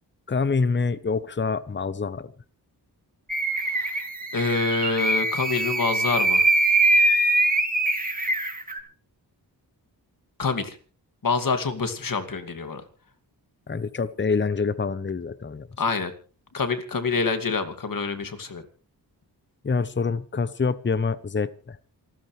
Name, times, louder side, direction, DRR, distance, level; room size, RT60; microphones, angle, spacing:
voice 1, 0.3-2.3 13.7-15.7 19.6-21.8, left 4 dB, 30° left, 15 dB, 0.9 m, -26 dB
sound 1, 3.3-8.8, right 2 dB, 20° right, 3.0 m, -23 dB
voice 2, 3.5-4.0 4.3-6.5 10.4-10.8 11.2-12.9 15.8-16.1 16.5-18.6, left 4 dB, 55° left, 8 dB, 2.5 m, -26 dB
28.0 x 13.5 x 3.3 m, 0.37 s
cardioid pair, 75°, 40 cm